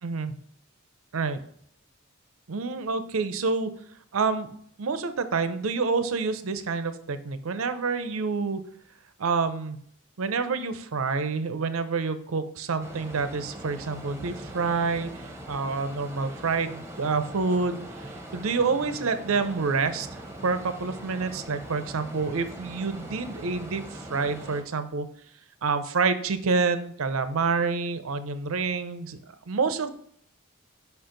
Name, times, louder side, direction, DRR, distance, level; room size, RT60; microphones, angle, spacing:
voice 1, 0.0-0.4 1.1-1.4 2.5-3.7 4.1-4.5 4.8-8.6 9.2-9.8 10.2-25.1 25.6-29.2 29.5-29.9, right 4 dB, 75° right, 11 dB, 0.6 m, -28 dB
sound 1, 12.8-24.6, right 1 dB, 10° right, 0.8 m, -41 dB
5.6 x 4.4 x 3.8 m, 0.65 s
head